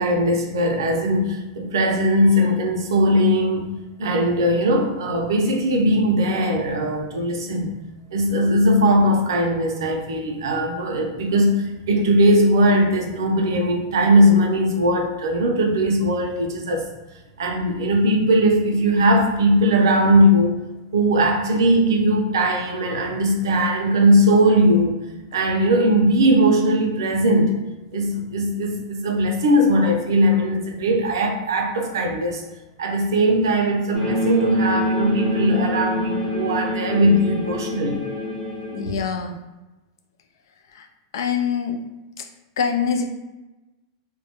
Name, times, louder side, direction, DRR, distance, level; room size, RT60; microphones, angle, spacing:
voice 1, 0.0-3.7 4.0-7.7 8.1-16.9 17.4-20.6 20.9-25.0 25.3-27.6 27.9-32.4 32.8-38.1, equal, 80° right, 3 dB, 0.5 m, -19 dB
sound 1, 33.9-39.0, equal, 10° left, 0.7 m, -25 dB
voice 2, 38.7-39.3 41.1-41.7 42.6-43.0, left 6 dB, 75° left, 5 dB, 0.4 m, -23 dB
2.1 x 2.1 x 2.8 m, 1.1 s
hypercardioid pair, 120°, 2 cm